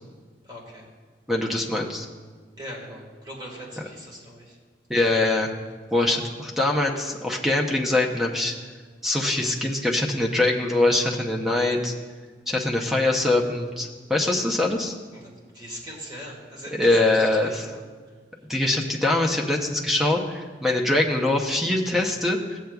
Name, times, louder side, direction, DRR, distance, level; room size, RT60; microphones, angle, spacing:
voice 1, 0.4-0.9 2.6-4.6 15.1-15.3 15.5-17.8, equal, 25° right, -3 dB, 1.7 m, -40 dB
voice 2, 1.3-2.1 4.9-5.5 5.9-8.5 9.0-11.9 12.5-14.9 16.7-17.7 18.5-22.6, left 2 dB, ahead, 0 dB, 0.7 m, -23 dB
16.5 x 7.7 x 2.3 m, 1.5 s
head